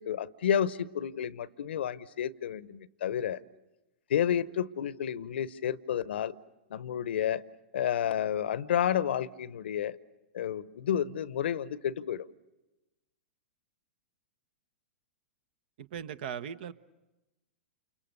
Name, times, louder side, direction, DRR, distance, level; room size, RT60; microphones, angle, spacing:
voice 1, 0.0-3.4 4.1-6.4 6.7-7.4 7.7-9.9 10.3-12.2, left 9 dB, 65° left, 18 dB, 0.9 m, -30 dB
voice 2, 15.8-16.7, right 8 dB, 60° right, 14 dB, 1.1 m, -38 dB
29.5 x 28.5 x 6.7 m, 1.0 s
figure-of-eight pair, 105°, 6 cm